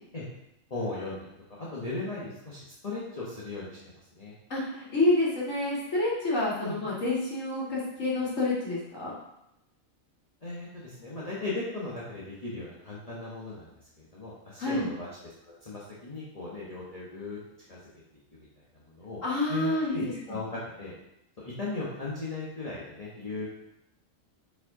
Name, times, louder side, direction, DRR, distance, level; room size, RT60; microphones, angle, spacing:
voice 1, 0.7-3.8 4.1-4.3 6.6-6.8 10.4-13.7 14.0-17.4 17.7-17.8 18.3-18.5 18.7-19.2 19.5-20.9 21.4-23.5, left 2 dB, 30° left, -7 dB, 1.2 m, -37 dB
voice 2, 4.5-9.1 14.6-14.9 19.2-20.4, left 2 dB, 70° left, -6 dB, 2.5 m, -28 dB
5.4 x 4.6 x 4.8 m, 0.85 s
omnidirectional pair, 1.4 m